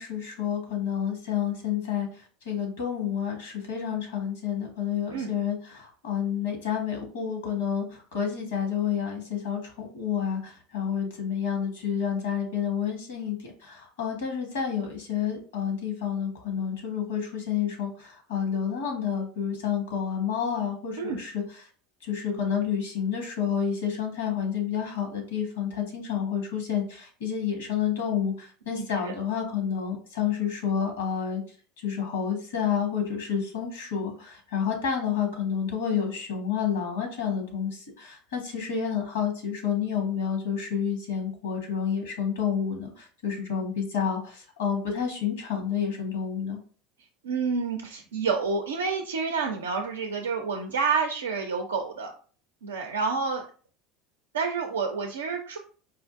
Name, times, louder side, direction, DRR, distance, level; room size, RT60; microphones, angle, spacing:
voice 1, 0.0-21.6 22.0-31.4 31.8-46.6, left 8 dB, 80° left, 3 dB, 1.2 m, -29 dB
voice 2, 28.8-29.1 47.2-52.1 52.6-53.4 54.3-55.6, right 5 dB, 85° right, 3 dB, 0.4 m, -29 dB
4.3 x 2.5 x 2.5 m, 0.41 s
hypercardioid pair, 75°, 0 cm